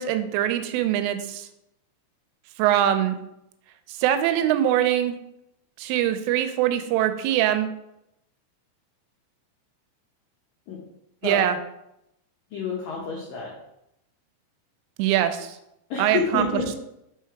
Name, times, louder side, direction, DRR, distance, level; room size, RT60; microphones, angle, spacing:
voice 1, 0.0-1.5 2.6-3.2 3.9-5.1 5.8-7.7 11.2-11.6 15.0-15.6 16.0-16.5, right 11 dB, 85° right, 9 dB, 3.1 m, -23 dB
voice 2, 12.5-13.5 15.9-16.8, left 4 dB, 85° left, -3 dB, 2.0 m, -29 dB
6.5 x 4.7 x 4.5 m, 0.83 s
omnidirectional pair, 5.7 m